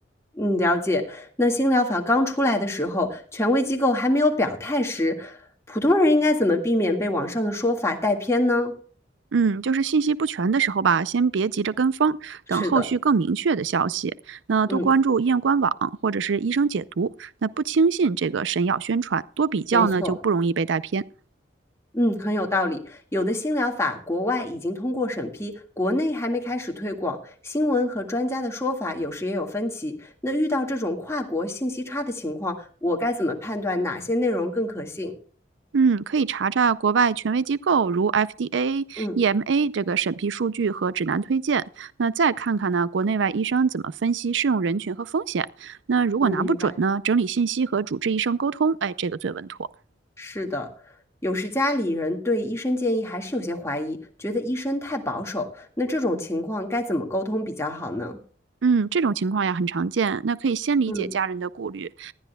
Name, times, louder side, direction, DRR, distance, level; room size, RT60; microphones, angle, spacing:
voice 1, 0.4-5.4 5.7-8.7 12.5-12.8 14.7-14.9 19.7-20.1 21.9-35.1 39.0-39.2 46.2-46.7 50.2-50.7 51.2-58.2 60.9-61.1, left 1 dB, 15° left, 1.8 m, -25 dB
voice 2, 9.3-21.0 35.7-49.6 58.6-62.1, right 5 dB, 85° right, 0.5 m, -23 dB
19.0 x 13.0 x 2.3 m
head